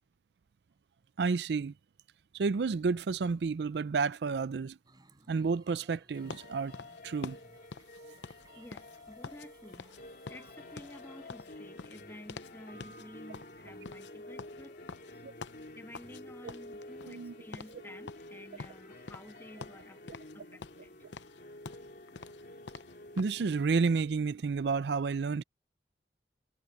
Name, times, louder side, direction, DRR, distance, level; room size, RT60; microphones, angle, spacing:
voice 1, 1.2-1.7 2.3-4.8 5.3-6.7 7.0-7.4 15.2-15.3 17.1-17.3 23.2-25.4, right 4 dB, 70° right, 0.4 m, -30 dB
sound 1, 4.8-11.8, right 2 dB, 25° right, 4.0 m, -63 dB
sound 2, 6.1-24.2, left 1 dB, 55° left, 2.6 m, -50 dB
sound 3, 6.3-9.5 9.7-10.0 10.3-12.6 12.8-13.1 13.3-16.2 16.5-17.3 17.5-17.8 18.1-19.3 19.6-20.4 20.6-23.4, left 4 dB, 90° left, 0.7 m, -46 dB
voice 2, 8.5-10.0 10.3-14.8 15.1-15.2 15.7-21.0, left 1 dB, 15° left, 2.0 m, -52 dB
head